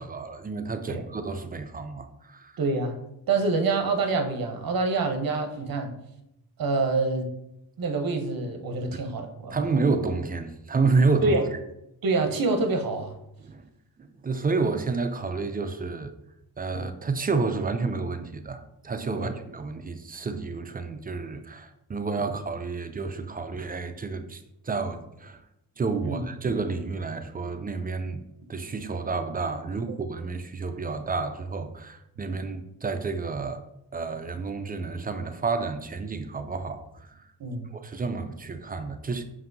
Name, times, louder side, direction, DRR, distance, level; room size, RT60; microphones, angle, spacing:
voice 1, 0.0-2.6 8.9-9.0 9.5-11.6 13.4-13.7 14.0-16.1 16.6-25.4 25.8-28.2 28.5-33.6 33.9-37.3 37.7-39.2, right 4 dB, 20° right, 9 dB, 0.3 m, -30 dB
voice 2, 2.6-3.0 3.3-6.0 6.6-7.3 7.8-9.6 11.2-11.4 12.0-13.1 16.7-16.8 19.2-19.3 26.0-26.2 37.4-37.7, right 3 dB, 50° right, 5 dB, 0.8 m, -26 dB
5.3 x 2.7 x 2.6 m, 0.83 s
cardioid pair, 55°, 46 cm